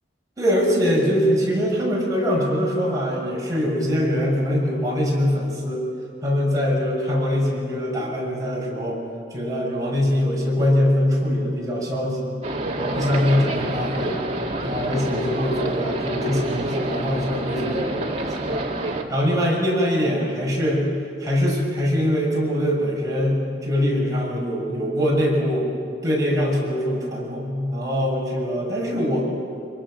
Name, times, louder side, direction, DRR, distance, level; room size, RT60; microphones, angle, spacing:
voice 1, 0.4-5.9 6.2-9.0 9.3-12.4 12.8-14.2 14.6-18.5 19.1-20.8 21.2-25.7 26.0-29.3, equal, 20° right, -4 dB, 6.4 m, -23 dB
sound 1, 12.4-19.0, right 1 dB, 35° right, 2.0 m, -28 dB
25.5 x 23.0 x 6.4 m, 2.4 s
head